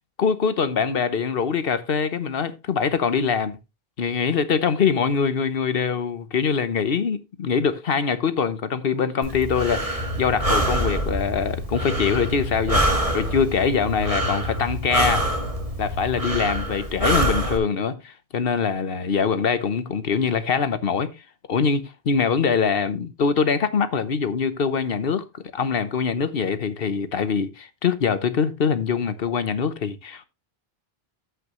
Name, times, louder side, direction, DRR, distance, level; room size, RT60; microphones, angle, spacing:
voice 1, 0.2-3.6 4.0-12.9 13.1-15.3 15.8-21.2 21.5-30.3, left 6 dB, 65° left, 1.1 m, -23 dB
Breathing, 9.2-17.6, right 1 dB, 35° right, 1.8 m, -26 dB
sound 1, 10.0-16.7, left 1 dB, 50° right, 2.7 m, -32 dB
14.0 x 5.8 x 3.0 m
omnidirectional pair, 1.0 m